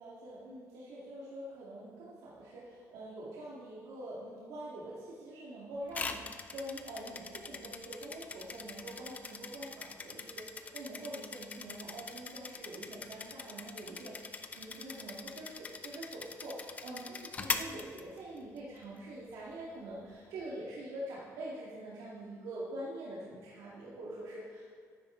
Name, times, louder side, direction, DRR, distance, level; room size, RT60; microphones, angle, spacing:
voice 1, 0.0-24.6, right 1 dB, 85° right, -7 dB, 2.1 m, -45 dB
sound 1, 5.9-18.6, left 4 dB, 25° left, 0.5 m, -42 dB
12.5 x 10.0 x 3.8 m, 2.1 s
cardioid pair, 155°, 6 cm